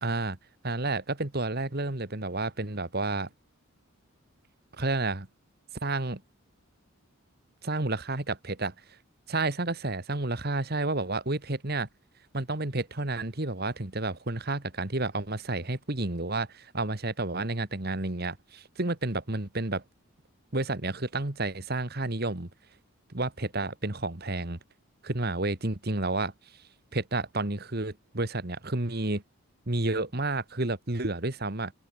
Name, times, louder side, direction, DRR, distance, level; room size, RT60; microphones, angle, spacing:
voice 1, 0.0-0.4 0.6-3.3 4.8-5.3 5.8-6.2 7.7-8.7 9.3-11.9 12.3-19.8 20.5-22.5 23.1-24.6 25.0-26.3 26.9-29.2 29.7-31.7, right 2 dB, 45° right, 1.7 m, -30 dB
open air
head